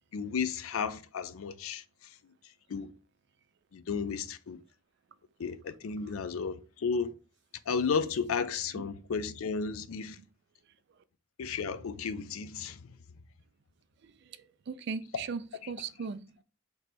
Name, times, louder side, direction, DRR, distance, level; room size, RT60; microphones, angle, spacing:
voice 1, 0.1-1.8 2.7-2.9 3.7-4.6 5.4-7.1 7.7-10.2 11.4-12.9, left 5 dB, 90° left, 0.4 m, -33 dB
voice 2, 14.0-15.4 15.7-16.2, right 5 dB, 55° right, 0.3 m, -38 dB
3.2 x 3.1 x 4.1 m
head